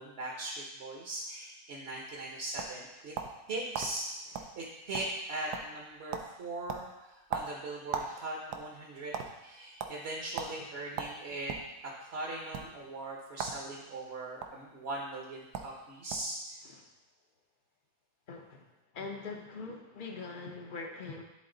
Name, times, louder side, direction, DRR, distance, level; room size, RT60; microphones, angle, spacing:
voice 1, 0.0-3.1 3.5-11.6 11.8-16.6, right 2 dB, 50° right, -2 dB, 1.0 m, -40 dB
sound 1, 2.0-3.4 3.7-3.9 4.3-4.5 4.8-5.3 5.5-5.8 6.1-6.3 6.7-8.1 8.4-9.3 9.8-9.9 10.4-10.5 11.0-11.7 12.4-12.6 13.3-13.6 13.9-14.5 15.2-15.3 15.5-15.7 16.1-16.4, right 7 dB, 90° right, 1.2 m, -37 dB
voice 2, 18.3-18.6 18.9-21.2, left 4 dB, 50° left, 2 dB, 0.6 m, -42 dB
9.5 x 3.9 x 3.8 m, 0.97 s
omnidirectional pair, 1.7 m